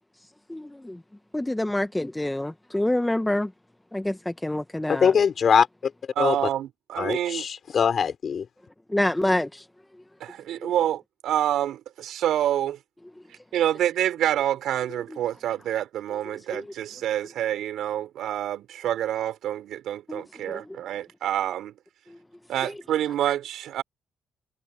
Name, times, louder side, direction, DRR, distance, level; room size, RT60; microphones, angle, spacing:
voice 1, 0.5-1.0 1.3-3.5 3.9-5.1 8.9-9.6 10.6-10.7 16.5-16.7 20.1-20.6, left 1 dB, 10° left, 1.1 m, -27 dB
voice 2, 4.9-5.9 6.2-6.4 7.0-8.5, left 7 dB, 50° left, 4.4 m, -22 dB
voice 3, 6.2-7.4 10.2-12.8 13.5-21.8 22.5-23.8, right 11 dB, 80° right, 4.8 m, -27 dB
cardioid pair, 90°, 0 cm